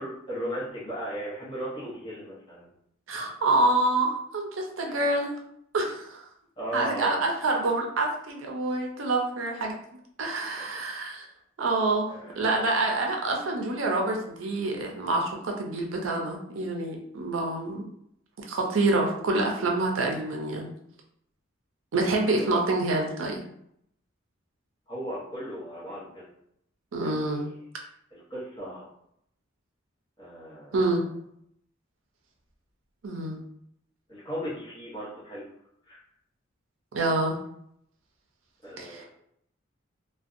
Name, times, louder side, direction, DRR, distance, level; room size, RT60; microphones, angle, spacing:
voice 1, 0.0-2.7 6.6-7.2 10.7-10.8 12.1-12.4 22.4-22.6 24.9-26.3 27.0-27.4 28.1-28.9 30.2-30.7 34.1-35.5 35.9-36.0 38.6-39.0, equal, 25° left, -8 dB, 1.0 m, -36 dB
voice 2, 3.1-5.3 5.7-6.2 6.7-9.7 10.2-11.3 11.6-17.8 18.5-20.7 21.9-23.4 26.9-27.5 30.7-31.1 33.0-33.4 36.9-37.4 38.8-39.0, right 2 dB, 80° right, 1 dB, 0.5 m, -27 dB
2.5 x 2.1 x 2.5 m, 0.73 s
head